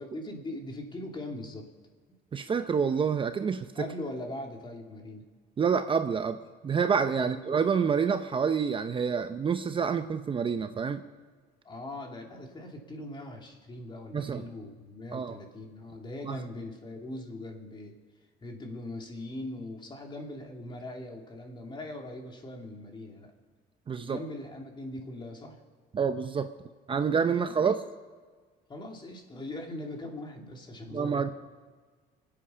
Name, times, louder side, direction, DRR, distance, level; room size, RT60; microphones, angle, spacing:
voice 1, 0.0-1.7 2.1-2.2 3.7-5.3 7.1-7.6 11.6-17.9 18.4-23.3 24.0-25.6 27.5-27.7 28.7-31.3, left 1 dB, 30° left, 1 dB, 2.7 m, -41 dB
voice 2, 2.3-3.8 5.6-6.4 6.6-11.0 14.1-14.4 15.1-15.4 16.2-16.4 23.9-24.2 25.9-26.5 26.9-27.8 30.9-31.3, right 6 dB, 30° right, 9 dB, 0.6 m, -27 dB
26.0 x 8.7 x 5.6 m, 1.5 s
cardioid pair, 110°, 17 cm